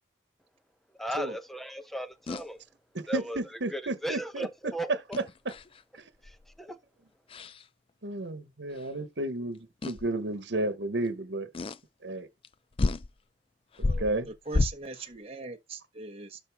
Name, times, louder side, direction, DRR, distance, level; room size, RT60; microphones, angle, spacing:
voice 1, 1.0-2.6 3.1-3.4 3.7-5.2 6.2-6.8, equal, ahead, 0.9 m, -36 dB
sound 1, 2.3-2.5 5.1-5.8 6.2-6.5 7.3-7.6 8.8-8.9 9.8-10.1 11.5-11.8 12.4-12.5 12.8-13.1 13.7-15.1, left 2 dB, 30° left, 0.4 m, -30 dB
voice 2, 2.9-4.5 5.9-6.0 8.0-11.5 12.0-12.3 13.8-14.3, right 1 dB, 80° right, 1.2 m, -32 dB
voice 3, 13.8-16.4, right 3 dB, 35° right, 1.1 m, -39 dB
12.0 x 4.1 x 3.5 m
head